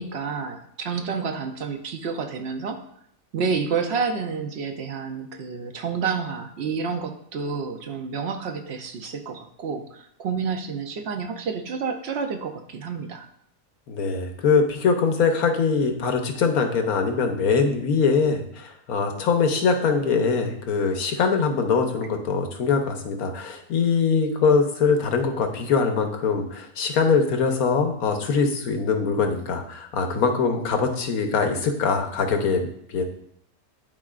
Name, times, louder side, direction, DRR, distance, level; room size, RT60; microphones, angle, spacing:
voice 1, 0.0-2.8 3.3-13.3, right 5 dB, 55° right, 6 dB, 0.8 m, -29 dB
voice 2, 13.9-33.0, left 5 dB, 85° left, 5 dB, 1.4 m, -22 dB
11.5 x 4.5 x 2.5 m, 0.71 s
omnidirectional pair, 1.5 m